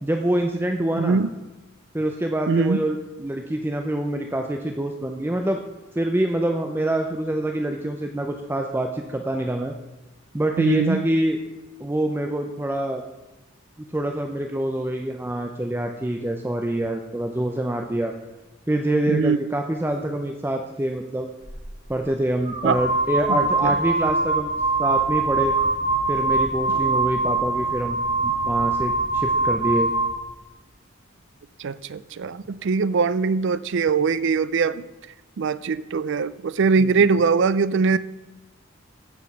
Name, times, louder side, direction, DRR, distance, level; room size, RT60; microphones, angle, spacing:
voice 1, 0.0-1.2 1.9-5.6 5.9-9.7 10.3-11.4 11.8-13.0 13.9-18.1 18.7-21.3 21.9-24.5 24.8-25.5 26.1-28.0 28.2-29.9 36.8-36.9, right 1 dB, 10° right, 3 dB, 0.6 m, -25 dB
voice 2, 1.0-1.3 2.5-2.8 10.6-11.1 19.1-19.4 22.6-22.8 23.3-23.8 26.7-27.0 31.6-34.8 35.4-38.0, right 5 dB, 60° right, 17 dB, 0.4 m, -22 dB
sound 1, 21.5-21.6 22.5-30.2, right 3 dB, 30° right, 2.8 m, -23 dB
15.0 x 5.1 x 5.9 m, 1.1 s
head